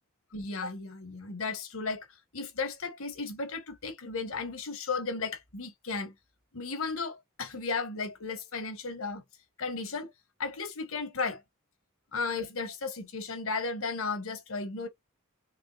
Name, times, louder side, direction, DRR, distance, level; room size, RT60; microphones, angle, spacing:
voice 1, 0.3-2.1 2.3-6.1 6.5-9.2 9.6-10.1 10.4-11.4 12.1-14.9, left 4 dB, 75° left, 1.3 m, -34 dB
4.4 x 3.1 x 2.4 m
head